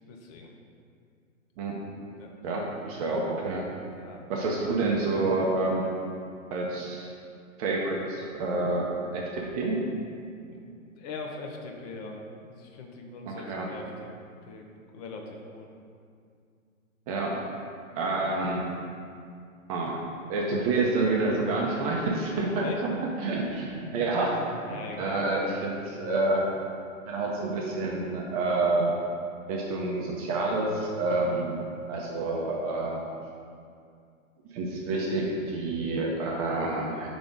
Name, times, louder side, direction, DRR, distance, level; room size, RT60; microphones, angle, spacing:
voice 1, 0.1-0.5 2.1-2.3 3.8-4.2 10.5-14.1 14.4-14.7 14.9-15.7 22.6-22.8 24.7-25.3 31.2-31.5, left 3 dB, 30° left, 1 dB, 0.6 m, -41 dB
voice 2, 2.4-3.6 4.3-5.9 6.5-7.1 7.6-9.8 13.3-13.7 17.1-17.4 17.9-18.7 19.7-20.0 20.3-22.9 23.2-24.4 24.7-26.4 27.1-28.9 29.5-31.6 31.9-33.0 34.5-37.1, right 2 dB, 30° right, -2 dB, 0.6 m, -28 dB
5.1 x 3.7 x 5.1 m, 2.3 s
hypercardioid pair, 125°, 41 cm